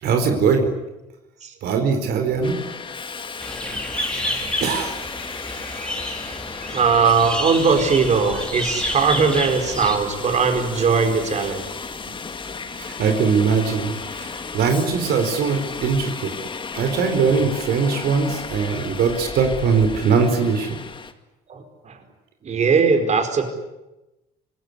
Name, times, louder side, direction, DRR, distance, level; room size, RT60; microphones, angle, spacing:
voice 1, 0.0-0.7 1.6-2.6 4.4-5.0 6.3-6.4 12.7-16.3 16.7-20.8, right 5 dB, 70° right, 6 dB, 4.3 m, -21 dB
Subway metro underground, 2.4-21.1, left 5 dB, 30° left, 2.2 m, -34 dB
sound 1, 3.4-10.0, left 1 dB, 5° left, 3.8 m, -29 dB
voice 2, 6.7-11.6 21.5-22.0 22.4-23.5, right 5 dB, 45° right, 6 dB, 4.7 m, -19 dB
25.5 x 20.0 x 9.9 m, 0.99 s
cardioid pair, 110°, 17 cm